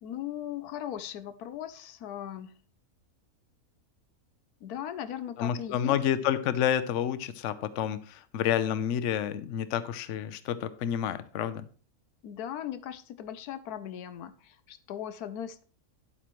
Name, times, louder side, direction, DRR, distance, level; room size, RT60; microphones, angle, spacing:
voice 1, 0.0-2.6 4.6-6.0 12.2-15.6, left 10 dB, 85° left, 12 dB, 1.2 m, -38 dB
voice 2, 5.4-11.7, left 9 dB, 60° left, 13 dB, 0.9 m, -29 dB
10.5 x 8.4 x 3.1 m, 0.41 s
omnidirectional pair, 1.6 m